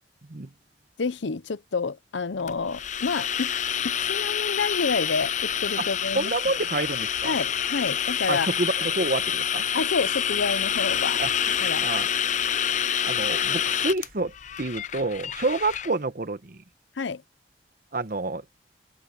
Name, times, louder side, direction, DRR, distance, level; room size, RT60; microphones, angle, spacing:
voice 1, 1.0-3.5 3.8-6.3 6.7-6.8 7.2-8.5 9.7-11.2 11.6-11.8 17.0-17.2, left 4 dB, 85° left, 0.7 m, -28 dB
sound 1, 2.5-15.9, left 9 dB, 40° left, 0.6 m, -27 dB
voice 2, 6.1-7.3 8.3-9.6 11.2-11.3 11.8-12.1 13.0-14.3 14.6-16.6 17.9-18.4, right 2 dB, 50° right, 1.0 m, -28 dB
open air
head